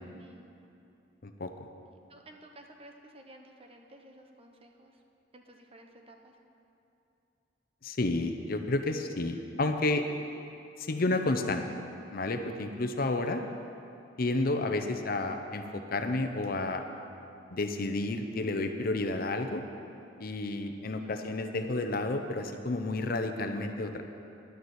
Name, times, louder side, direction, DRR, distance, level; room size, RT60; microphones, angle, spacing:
voice 1, 0.2-0.5 1.8-5.0 5.3-6.3 21.0-21.3, right 1 dB, 30° right, 3 dB, 0.9 m, -54 dB
voice 2, 7.8-10.0 10.8-11.6 12.1-13.4 14.2-16.8 17.5-19.6 20.2-24.0, left 2 dB, 50° left, 6 dB, 0.7 m, -31 dB
11.0 x 7.0 x 8.1 m, 2.7 s
head